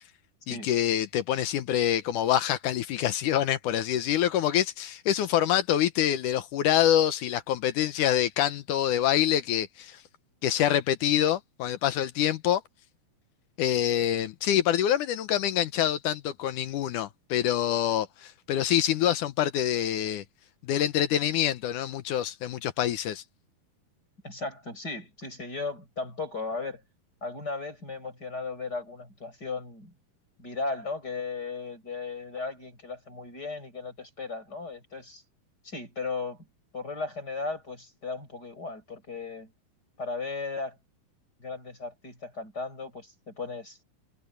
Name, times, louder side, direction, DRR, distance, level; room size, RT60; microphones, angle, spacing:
voice 1, 0.5-10.0 10.4-12.6 13.6-20.2 20.6-23.2, left 11 dB, 70° left, 2.0 m, -26 dB
voice 2, 24.2-26.8 27.2-29.9 30.4-35.2 35.6-36.5 36.7-39.5 40.0-40.8 41.4-43.8, left 4 dB, 25° left, 6.4 m, -36 dB
omnidirectional pair, 4.5 m